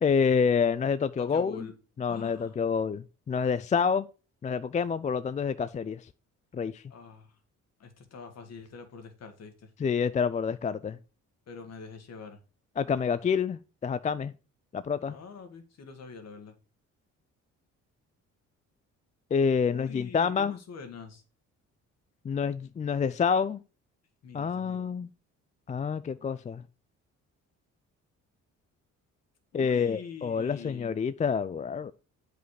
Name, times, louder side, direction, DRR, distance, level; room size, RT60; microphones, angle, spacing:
voice 1, 0.0-1.7 2.0-4.1 4.4-6.0 6.5-6.8 9.8-11.0 12.8-14.3 14.7-15.1 19.3-20.6 22.2-23.6 24.3-25.1 25.7-26.6 29.5-31.9, left 6 dB, 25° left, 0.3 m, -28 dB
voice 2, 1.2-1.7 2.1-2.5 6.9-7.3 7.8-9.7 11.5-12.4 15.1-16.5 19.7-21.2 24.2-24.9 29.5-30.9, left 5 dB, 55° left, 1.7 m, -45 dB
8.0 x 5.2 x 4.8 m
cardioid pair, 90°, 30 cm